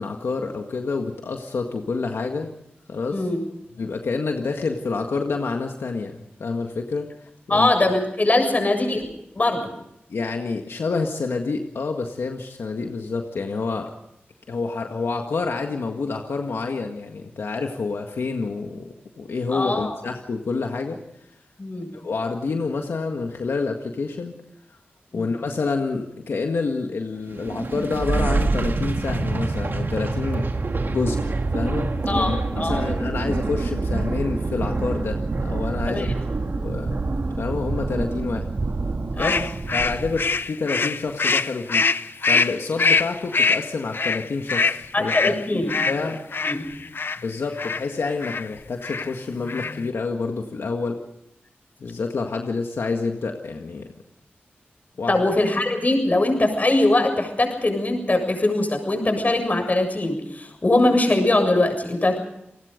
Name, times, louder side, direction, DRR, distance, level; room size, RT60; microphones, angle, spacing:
voice 1, 0.0-2.5 2.9-3.3 3.8-7.1 7.5-7.7 10.1-13.9 14.5-21.0 21.9-24.4 25.1-30.5 30.8-36.1 36.6-36.9 37.4-38.5 39.2-41.9 42.3-45.3 45.9-46.2 47.2-51.0 51.8-53.9 55.0-55.2, left 4 dB, 90° left, 3 dB, 1.8 m, -28 dB
voice 2, 7.5-9.1 9.4-9.7 19.5-19.9 21.6-21.9 25.1-25.3 32.1-32.8 35.9-36.1 39.1-39.4 44.9-45.7 46.4-46.6 55.1-62.2, left 2 dB, 40° left, 6 dB, 7.2 m, -21 dB
sound 1, 27.3-40.4, right 3 dB, 60° right, 2.3 m, -26 dB
sound 2, 39.2-47.2 47.6-47.9 48.2-48.5 48.8-49.1 49.4-49.9, left 4 dB, 65° left, 0.8 m, -23 dB
29.5 x 19.5 x 5.3 m, 0.81 s
wide cardioid pair, 65°, 4 cm